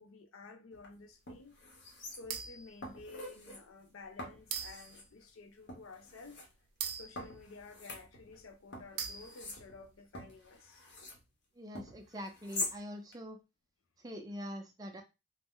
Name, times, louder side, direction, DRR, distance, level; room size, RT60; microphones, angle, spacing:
voice 1, 0.0-1.6 2.1-6.4 6.9-10.9, left 3 dB, 75° left, 0.5 m, -52 dB
sound 1, 0.7-0.9 1.3-2.5 2.8-3.6 4.2-5.1 5.7-6.5 7.2-8.4 8.7-11.2 11.7-12.8 13.1-13.2, left 2 dB, 55° left, 0.8 m, -44 dB
sound 2, 2.3-2.8 3.5-3.6 4.5-5.0 6.8-8.0 9.0-9.6, right 7 dB, 90° right, 0.5 m, -41 dB
voice 2, 11.5-13.4 14.0-15.0, equal, 20° right, 0.4 m, -44 dB
2.5 x 2.0 x 3.5 m
head